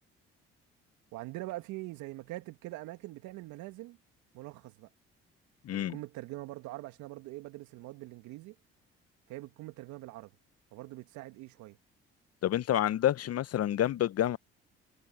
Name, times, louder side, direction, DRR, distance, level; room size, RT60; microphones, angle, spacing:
voice 1, 1.1-4.0 4.3-4.9 5.7-8.5 9.3-10.3 10.7-11.8, right 18 dB, 75° right, 2.6 m, -43 dB
voice 2, 5.6-6.0 12.4-14.4, left 12 dB, 55° left, 0.9 m, -28 dB
hypercardioid pair, 50°, 30 cm